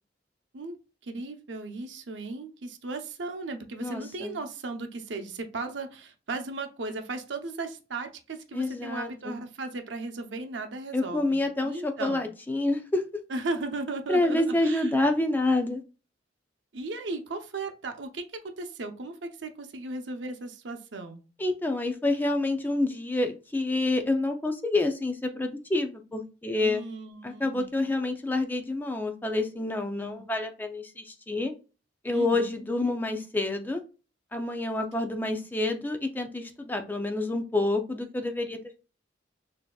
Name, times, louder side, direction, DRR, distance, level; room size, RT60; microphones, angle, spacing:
voice 1, 1.0-12.2 13.3-14.9 16.7-21.2 26.5-27.9 29.9-30.2 32.1-32.5, right 3 dB, 80° right, 6 dB, 0.7 m, -36 dB
voice 2, 3.8-4.4 8.5-9.4 10.9-13.0 14.1-15.8 21.4-26.8 27.2-31.5 32.0-33.8 34.3-38.8, left 2 dB, 10° left, 4 dB, 0.4 m, -28 dB
6.5 x 2.7 x 2.3 m, 0.34 s
head